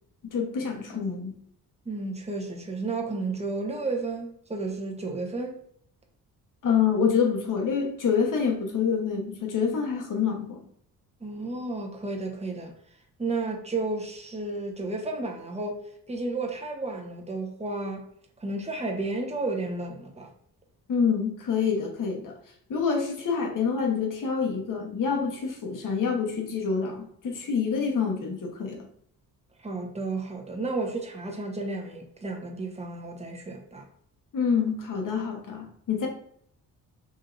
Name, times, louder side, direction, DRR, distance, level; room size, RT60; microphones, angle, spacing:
voice 1, 0.2-1.3 6.6-10.6 20.9-22.3 22.7-28.8 34.3-36.1, left 6 dB, 55° left, 1.2 m, -27 dB
voice 2, 1.9-5.6 11.2-12.7 13.2-15.8 16.1-18.1 18.4-20.3 29.6-33.9, right 3 dB, 15° right, 1.0 m, -32 dB
5.2 x 2.7 x 2.5 m
cardioid pair, 95°, 37 cm